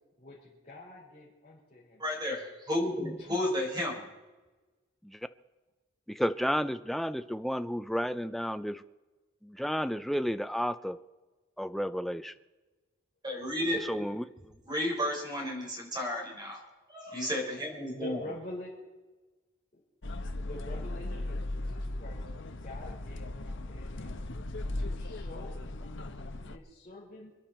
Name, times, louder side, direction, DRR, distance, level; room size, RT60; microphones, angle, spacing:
voice 1, 0.2-2.0 3.2-3.5 17.9-18.7 19.7-19.8 20.4-24.2 24.8-27.3, left 1 dB, 35° left, -9 dB, 4.9 m, -46 dB
voice 2, 2.0-4.0 13.2-13.8 14.7-16.6 16.9-18.2, left 1 dB, 20° right, 0 dB, 5.2 m, -32 dB
voice 3, 6.1-8.8 9.4-11.0 11.6-12.3 13.7-14.5, equal, ahead, 11 dB, 0.6 m, -32 dB
sound 1, 20.0-26.6, left 1 dB, 60° left, 1.1 m, -37 dB
27.0 x 11.0 x 4.4 m, 1.2 s
head